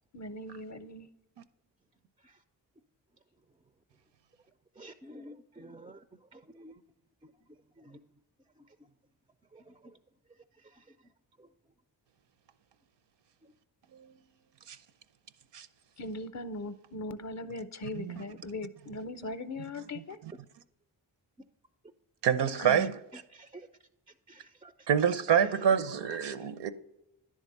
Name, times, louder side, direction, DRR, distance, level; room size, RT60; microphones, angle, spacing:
voice 1, 0.1-1.1 16.0-20.2 22.6-22.9, left 2 dB, 40° left, 0.5 m, -39 dB
voice 2, 4.8-6.0 6.3-6.7 7.8-8.0 9.5-9.7 11.4-11.5 19.2-19.3 23.3-23.7 24.3-24.7, right 1 dB, 15° right, 0.3 m, -50 dB
voice 3, 22.2-23.0 24.9-26.7, right 8 dB, 65° right, 0.6 m, -27 dB
10.0 x 3.6 x 5.2 m
supercardioid pair, 40°, 46 cm